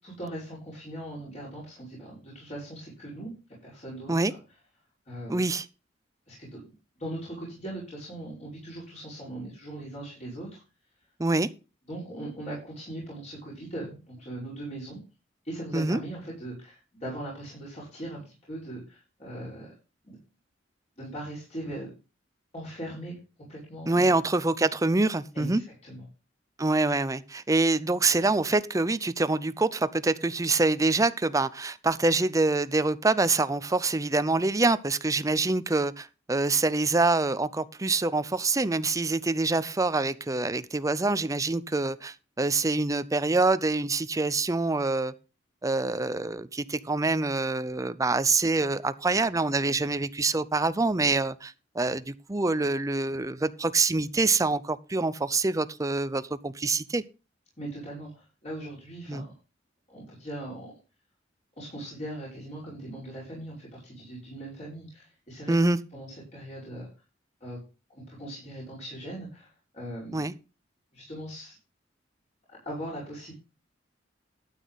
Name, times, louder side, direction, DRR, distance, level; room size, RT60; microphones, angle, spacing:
voice 1, 0.0-3.3 3.6-4.1 5.1-5.5 6.3-10.6 11.9-15.0 15.4-19.7 20.0-20.2 21.0-21.9 22.5-23.2 23.5-24.1 25.3-26.0 57.6-59.3 59.9-60.7 61.6-65.6 65.9-66.9 67.4-67.6 67.9-70.3 70.9-71.6 72.5-73.3, right 1 dB, 40° left, 5.4 m, -40 dB
voice 2, 5.3-5.7 11.2-11.5 15.7-16.0 23.9-25.6 26.6-45.1 45.6-57.0 59.1-59.3 65.5-65.8 70.1-70.3, right 3 dB, 20° right, 0.5 m, -25 dB
12.5 x 8.2 x 4.0 m
head